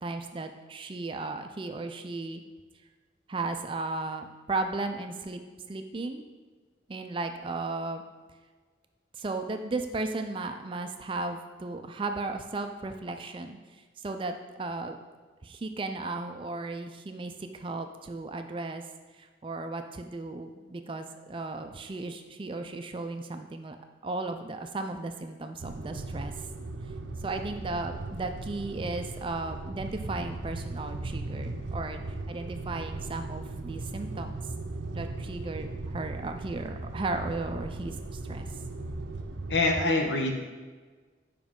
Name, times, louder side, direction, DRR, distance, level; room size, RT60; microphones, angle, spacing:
voice 1, 0.0-2.4 3.3-5.4 5.7-6.2 6.9-8.0 9.1-13.6 14.0-15.0 15.4-18.8 19.2-23.8 24.0-26.3 27.2-34.4 34.9-38.5, right 3 dB, 25° right, 6 dB, 0.3 m, -35 dB
sound 1, 25.6-39.6, right 2 dB, 90° right, 0.6 m, -37 dB
voice 2, 39.5-40.3, left 2 dB, 70° left, 3 dB, 0.9 m, -25 dB
7.1 x 5.1 x 3.7 m, 1.4 s
head